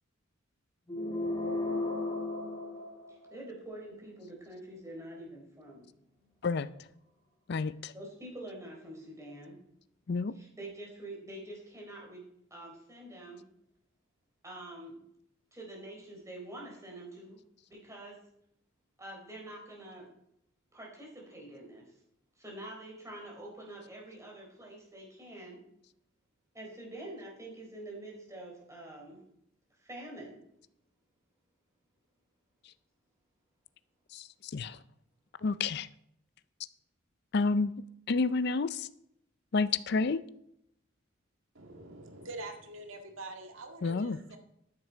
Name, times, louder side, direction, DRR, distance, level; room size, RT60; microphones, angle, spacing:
sound 1, 0.9-3.5, left 2 dB, 20° left, 1.7 m, -34 dB
voice 1, 3.1-5.9 7.9-9.6 10.4-13.4 14.4-15.0 15.5-17.4 17.7-18.2 19.0-20.1 20.7-21.8 22.4-25.6 26.5-29.2 29.8-30.4, right 1 dB, 15° right, 3.9 m, -46 dB
voice 2, 7.5-7.9 10.1-10.3 34.1-34.8 35.4-35.9 37.3-37.7 38.1-38.9 39.5-40.2 43.8-44.2, left 4 dB, 55° left, 0.5 m, -30 dB
voice 3, 41.6-44.4, right 2 dB, 80° right, 1.8 m, -45 dB
12.5 x 9.8 x 4.6 m
head